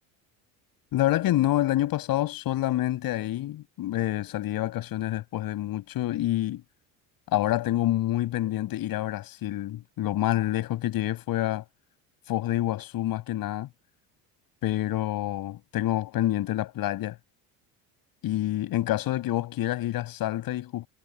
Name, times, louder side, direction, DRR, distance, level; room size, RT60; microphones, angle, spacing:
voice 1, 0.9-6.6 7.3-11.6 12.3-13.7 14.6-17.2 18.2-20.9, left 14 dB, 60° left, 6.9 m, -27 dB
cardioid pair, 125°, 39 cm